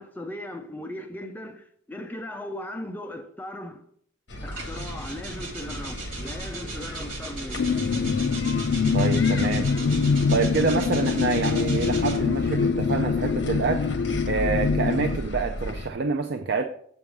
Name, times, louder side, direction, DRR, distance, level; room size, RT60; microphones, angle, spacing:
voice 1, 0.0-3.8 4.4-7.9, left 1 dB, 10° left, 0.5 m, -38 dB
sound 1, 4.3-15.9, left 1 dB, 65° left, 1.2 m, -35 dB
sound 2, 4.5-12.4 13.3-15.8, right 3 dB, 85° right, 1.6 m, -39 dB
sound 3, 7.6-15.2, left 5 dB, 85° left, 0.5 m, -24 dB
voice 2, 8.9-9.7 10.3-16.6, right 4 dB, 55° right, 0.5 m, -27 dB
7.8 x 3.5 x 6.1 m
head